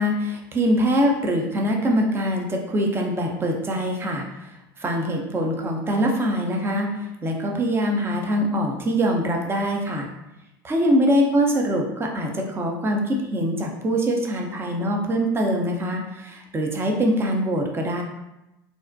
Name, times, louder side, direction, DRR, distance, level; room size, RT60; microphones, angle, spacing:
voice 1, 0.0-4.5 4.8-6.9 7.2-10.1 10.6-18.0, equal, 20° right, 1 dB, 0.5 m, -23 dB
2.4 x 2.1 x 2.5 m, 0.94 s
hypercardioid pair, 90°, 12 cm